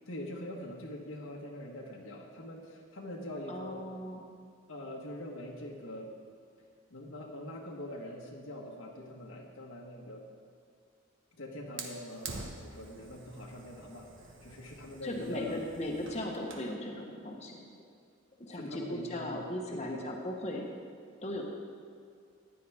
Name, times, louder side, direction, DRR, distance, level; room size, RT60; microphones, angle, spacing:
voice 1, 0.1-3.9 4.7-6.1 6.9-10.2 11.3-14.1 14.4-15.7 18.5-19.4 19.7-20.0, left 1 dB, 75° left, -2 dB, 1.4 m, -43 dB
voice 2, 3.5-4.2 15.0-17.7 18.4-20.7 21.2-21.4, left 1 dB, 30° left, 0 dB, 1.1 m, -37 dB
Fire, 11.8-16.7, right 3 dB, 65° right, 1.2 m, -47 dB
14.5 x 10.0 x 3.5 m, 2.3 s
head